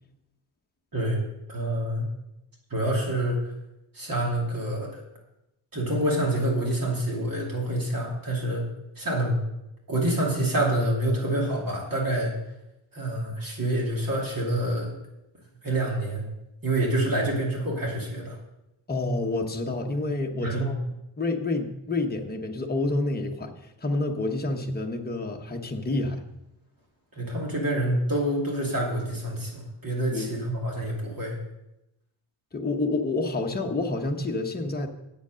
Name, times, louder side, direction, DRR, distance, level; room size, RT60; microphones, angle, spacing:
voice 1, 0.9-2.1 2.7-3.4 3.9-4.9 5.7-8.6 9.0-9.4 9.9-12.3 12.9-14.9 15.6-16.3 16.6-18.4 20.4-20.7 27.1-31.3, right 1 dB, 45° right, -2 dB, 2.6 m, -27 dB
voice 2, 18.9-20.8 21.2-26.2 30.1-30.3 32.5-34.9, left 2 dB, 20° left, 2 dB, 1.1 m, -28 dB
8.6 x 8.1 x 6.3 m, 0.91 s
wide cardioid pair, 155°, 49 cm